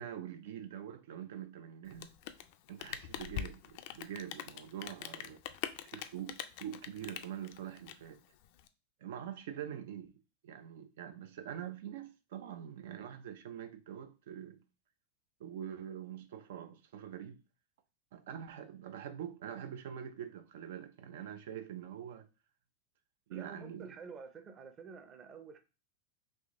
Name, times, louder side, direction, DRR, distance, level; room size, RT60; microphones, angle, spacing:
voice 1, 0.0-2.1 2.7-5.4 5.8-8.2 9.0-14.6 15.4-17.4 18.1-22.3 23.3-23.9, right 9 dB, 75° right, 0.4 m, -44 dB
Rain, 1.8-8.7, left 11 dB, 55° left, 0.4 m, -43 dB
voice 2, 23.3-25.6, right 5 dB, 25° right, 0.6 m, -49 dB
3.5 x 2.6 x 3.6 m
supercardioid pair, 150°, 0 cm